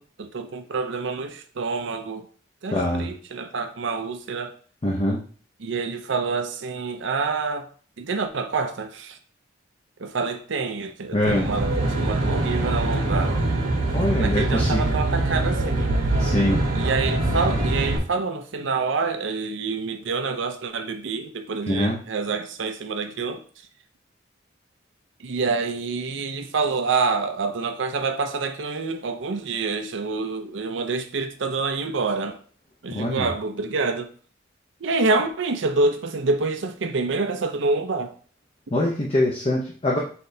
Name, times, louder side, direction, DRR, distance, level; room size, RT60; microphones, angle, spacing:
voice 1, 0.0-2.3 2.6-4.6 5.6-7.7 8.0-9.2 10.0-13.4 14.1-16.0 16.7-23.4 25.2-32.4 32.8-34.1 34.8-38.1, right 4 dB, 70° right, 0.5 m, -27 dB
voice 2, 2.7-3.1 4.8-5.2 11.1-11.5 13.9-14.9 16.2-16.6 21.7-22.0 32.9-33.3 38.7-40.0, left 1 dB, 30° left, 0.7 m, -23 dB
Aircraft, 11.3-18.0, right 2 dB, 85° right, 1.2 m, -23 dB
5.7 x 3.2 x 2.7 m
head